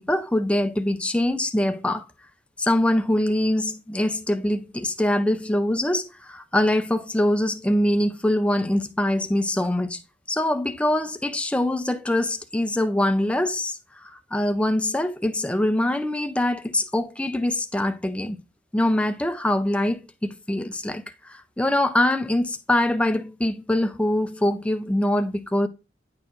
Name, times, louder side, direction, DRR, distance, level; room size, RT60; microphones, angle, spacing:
voice 1, 0.0-2.0 2.6-10.0 10.3-18.4 18.7-25.7, left 1 dB, 5° left, 0.4 m, -23 dB
9.6 x 4.4 x 2.4 m
head